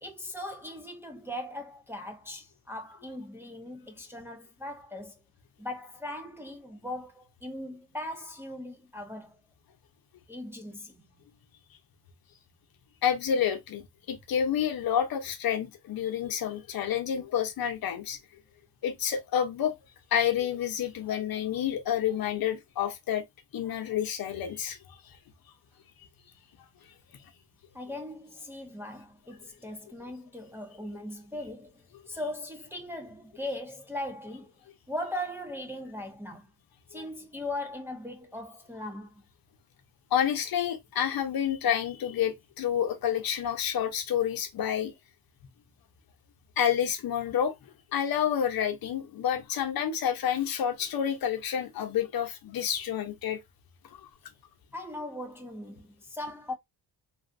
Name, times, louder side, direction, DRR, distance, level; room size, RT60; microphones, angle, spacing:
voice 1, 0.0-5.2 5.6-9.4 10.3-11.0 27.7-34.5 34.9-36.5 36.9-39.1 54.7-56.5, left 1 dB, 5° right, 0.5 m, -39 dB
voice 2, 13.0-18.2 18.8-19.7 20.1-23.2 23.5-25.0 36.9-37.0 40.1-44.9 46.6-47.5 47.9-53.4 54.0-54.1, left 9 dB, 55° left, 0.8 m, -29 dB
3.2 x 2.5 x 2.6 m
cardioid pair, 105°, 42 cm